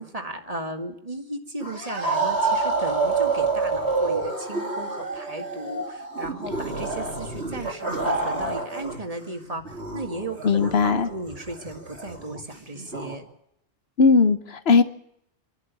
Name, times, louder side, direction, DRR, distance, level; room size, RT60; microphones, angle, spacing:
voice 1, 0.0-13.3, right 1 dB, 35° right, 4 dB, 2.0 m, -36 dB
sound 1, 1.6-9.0 9.3-13.2, right 3 dB, 85° right, 3.8 m, -28 dB
voice 2, 10.4-11.1 14.0-14.8, left 4 dB, 70° left, 11 dB, 1.2 m, -18 dB
27.0 x 12.0 x 8.3 m, 0.75 s
omnidirectional pair, 1.1 m